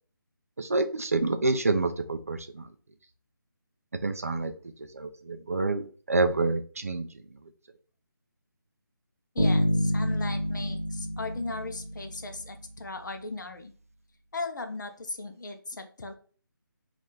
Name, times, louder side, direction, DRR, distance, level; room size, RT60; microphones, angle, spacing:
voice 1, 0.6-2.7 4.0-4.5 4.9-7.1, right 3 dB, 40° right, 8 dB, 0.4 m, -27 dB
voice 2, 9.3-13.7 14.3-16.1, left 3 dB, 55° left, 6 dB, 0.8 m, -37 dB
Bass guitar, 9.4-12.5, equal, 10° right, 0.8 m, -28 dB
3.4 x 2.5 x 4.1 m, 0.41 s
figure-of-eight pair, 175°, 12 cm